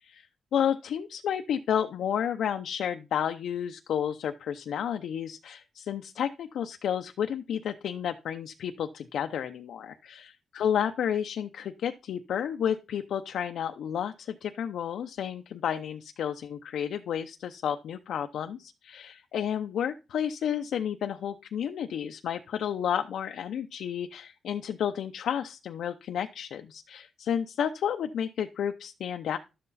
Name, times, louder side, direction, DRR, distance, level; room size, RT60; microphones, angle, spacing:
voice 1, 0.0-29.4, left 9 dB, 85° left, 6 dB, 0.7 m, -31 dB
12.0 x 7.7 x 4.2 m, 0.29 s
cardioid pair, 110°, 0 cm